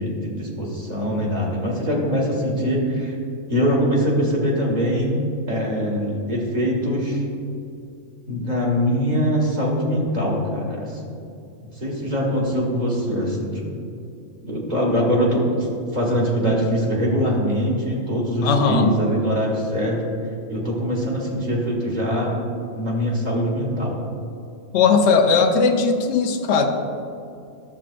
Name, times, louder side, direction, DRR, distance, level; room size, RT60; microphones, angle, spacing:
voice 1, 0.0-3.1 3.5-5.2 5.5-7.2 8.3-11.1 11.6-13.6 14.4-15.4 15.9-20.0 20.5-22.4 22.8-24.0, equal, 35° right, -2 dB, 1.7 m, -23 dB
voice 2, 18.4-19.0 24.7-26.7, left 4 dB, 65° left, 4 dB, 1.0 m, -18 dB
12.0 x 7.3 x 2.5 m, 2.5 s
omnidirectional pair, 1.4 m